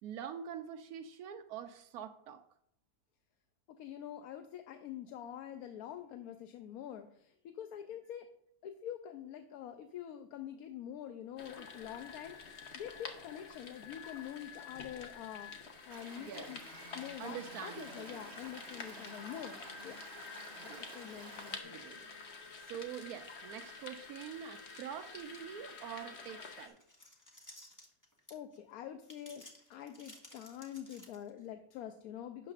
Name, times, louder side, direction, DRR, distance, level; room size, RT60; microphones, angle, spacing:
voice 1, 0.0-2.4 16.2-16.6 17.2-18.4 20.6-21.3 21.6-22.1 22.6-26.8, right 9 dB, 85° right, 7 dB, 1.1 m, -45 dB
voice 2, 3.7-8.3 8.6-16.6 16.9-20.0 20.6-21.8 28.3-32.5, left 10 dB, 80° left, 7 dB, 1.1 m, -46 dB
sound 1, 11.4-26.7, left 4 dB, 50° left, 1.2 m, -49 dB
Stream, 15.9-21.6, right 4 dB, 50° right, 1.1 m, -53 dB
sound 2, 26.6-28.6 29.0-31.5, left 1 dB, 15° left, 1.2 m, -56 dB
11.5 x 8.1 x 2.5 m, 0.71 s
omnidirectional pair, 1.6 m